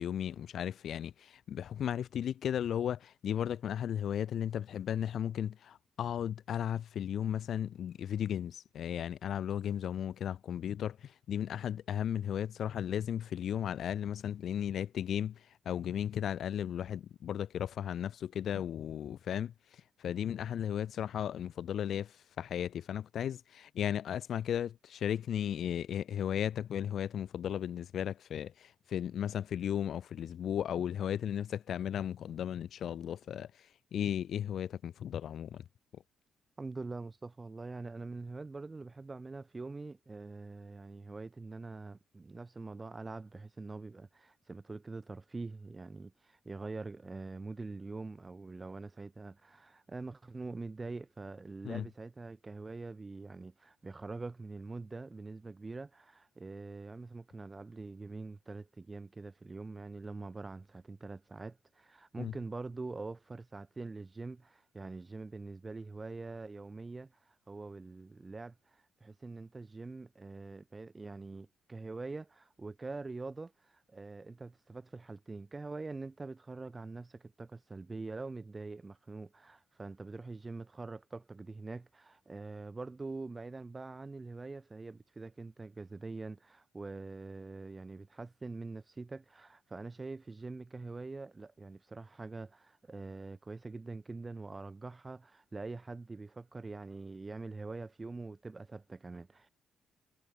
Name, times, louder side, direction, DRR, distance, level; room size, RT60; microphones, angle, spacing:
voice 1, 0.0-35.6 35.9-36.0 51.6-51.8 62.2-62.3, left 9 dB, 65° left, 0.5 m, -35 dB
voice 2, 36.6-99.5, right 3 dB, 25° right, 7.4 m, -44 dB
cardioid pair, 90°, 0 cm